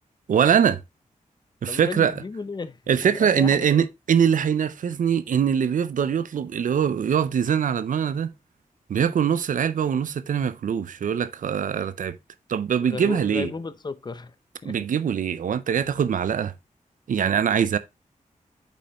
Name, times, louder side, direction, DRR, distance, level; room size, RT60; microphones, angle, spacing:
voice 1, 0.3-0.8 1.6-2.1 2.9-8.3 8.9-12.2 12.5-13.5 14.6-16.5 17.1-17.8, right 8 dB, 75° right, 0.5 m, -22 dB
voice 2, 1.6-2.8 3.2-3.9 12.8-14.3 14.6-14.8, left 4 dB, 30° left, 0.6 m, -34 dB
8.5 x 5.4 x 2.9 m
wide cardioid pair, 160°, 14 cm